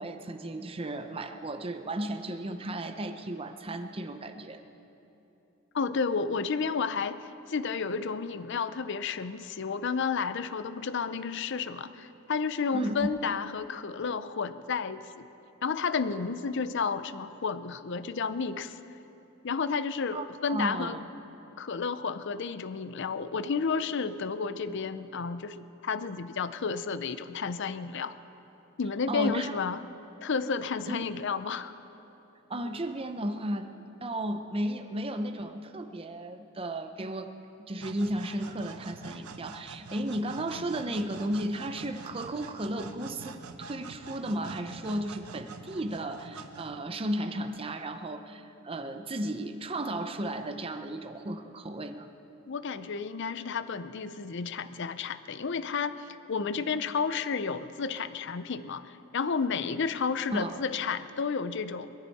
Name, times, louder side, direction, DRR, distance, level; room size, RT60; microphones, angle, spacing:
voice 1, 0.0-4.6 12.7-13.2 20.1-21.0 29.1-29.6 30.9-31.0 32.5-33.7 34.0-37.3 37.7-52.1 60.3-60.6, right 1 dB, 25° right, 7 dB, 0.6 m, -34 dB
voice 2, 5.7-15.3 15.6-18.8 19.4-21.0 21.6-28.1 28.8-29.8 30.2-31.7 52.5-61.9, left 5 dB, 55° left, 13 dB, 0.5 m, -31 dB
sound 1, 37.8-47.1, right 4 dB, 90° right, 0.8 m, -46 dB
21.5 x 14.5 x 4.2 m, 3.0 s
head